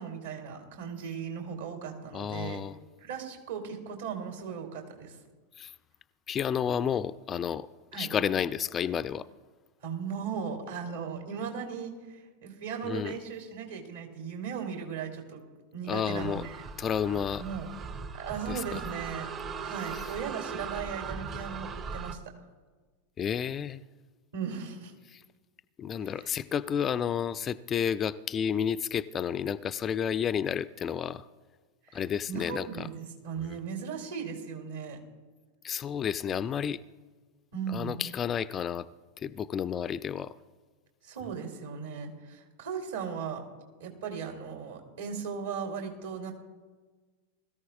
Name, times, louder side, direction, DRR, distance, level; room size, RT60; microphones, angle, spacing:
voice 1, 0.0-2.6 3.0-5.2 7.9-8.1 9.8-15.4 15.7-16.6 17.4-17.7 18.1-19.3 19.6-22.2 24.3-24.9 26.1-26.3 31.8-32.0 32.3-35.0 37.5-38.0 41.0-43.4 43.8-46.3, right 6 dB, 65° right, 3 dB, 3.0 m, -37 dB
voice 2, 2.1-2.8 5.6-5.7 6.3-7.7 8.0-9.3 12.8-13.1 15.9-16.5 16.8-17.4 18.5-18.8 19.9-20.1 23.2-23.8 25.1-25.2 25.8-31.2 31.9-32.9 33.4-33.6 35.6-36.8 37.7-38.9 39.2-40.3, left 8 dB, 25° left, 16 dB, 0.3 m, -31 dB
sound 1, 16.2-22.1, right 5 dB, 25° right, 0.7 m, -39 dB
21.0 x 14.0 x 2.4 m, 1.3 s
figure-of-eight pair, 90°, 0 cm